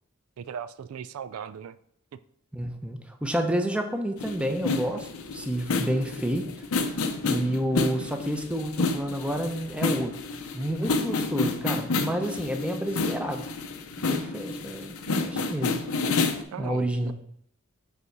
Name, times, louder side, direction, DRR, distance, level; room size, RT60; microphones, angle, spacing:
voice 1, 0.4-1.8 16.5-17.1, right 7 dB, 80° right, 14 dB, 0.3 m, -38 dB
voice 2, 2.5-6.5 7.2-10.1 10.5-13.5 14.0-15.8 16.6-17.1, right 1 dB, 5° right, 5 dB, 0.7 m, -29 dB
sound 1, 4.2-16.4, left 3 dB, 90° left, 0.7 m, -29 dB
8.1 x 4.1 x 4.7 m, 0.72 s
head